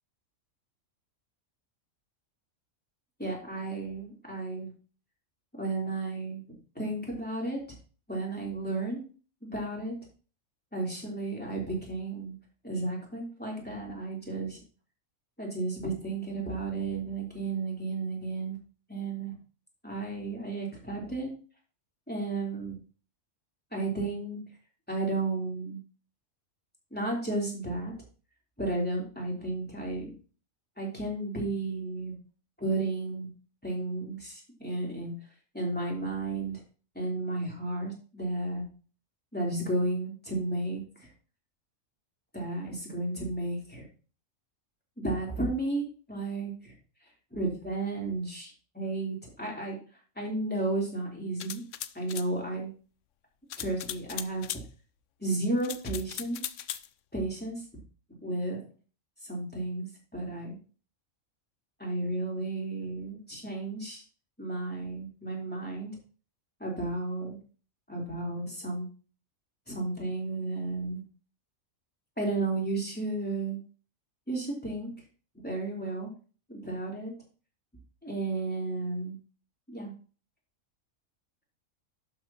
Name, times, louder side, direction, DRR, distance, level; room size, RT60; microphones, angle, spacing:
voice 1, 3.2-4.7 5.6-6.4 6.8-7.8 8.1-9.0 9.4-9.9 10.7-12.4 12.6-14.6 15.4-18.6 18.9-19.3 19.8-21.3 22.1-22.7 23.7-24.4 24.9-25.8 26.9-27.9 28.6-30.1 30.8-32.2 32.6-33.3 33.6-35.1 35.5-36.6 37.0-38.6 39.3-41.1 42.3-43.8 45.0-46.7 47.3-49.8 50.2-51.6 51.9-52.7 53.6-54.5 55.2-56.4 57.1-57.6 58.2-58.6 59.2-59.9 60.1-60.6 61.8-64.0 64.4-66.0 66.6-67.4 67.9-68.9 69.7-71.0 72.2-73.6 74.3-74.9 75.4-76.1 76.5-77.1 78.0-79.2 79.7-79.9, right 2 dB, 5° left, -3 dB, 3.5 m, -33 dB
sound 1, 51.4-52.3 53.5-54.6 55.6-56.9, left 11 dB, 75° left, 0.9 m, -38 dB
12.0 x 7.5 x 3.0 m, 0.37 s
omnidirectional pair, 1.3 m